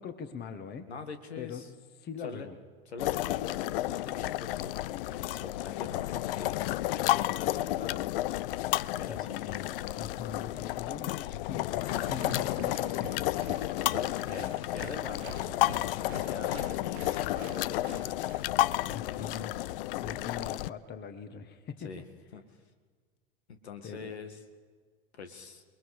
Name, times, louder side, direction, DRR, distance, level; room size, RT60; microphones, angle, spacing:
voice 1, 0.0-0.9 1.4-1.6 2.0-2.5 9.0-13.8 14.1-14.5 18.9-19.5 20.0-21.9 23.8-24.1, left 6 dB, 30° left, 10 dB, 1.6 m, -42 dB
voice 2, 0.9-1.7 2.2-2.5 2.9-6.6 6.9-8.2 8.8-9.7 12.0-12.5 13.9-15.6 15.9-18.2 18.8-19.2 21.8-22.0 22.3-22.4 23.5-24.4 25.1-25.6, left 5 dB, 75° left, 8 dB, 2.0 m, -44 dB
sound 1, 3.0-20.7, left 16 dB, 60° left, 0.5 m, -32 dB
Applause, 11.8-18.5, right 9 dB, 70° right, 1.0 m, -48 dB
28.5 x 21.0 x 4.9 m, 1.5 s
figure-of-eight pair, 85°, 33 cm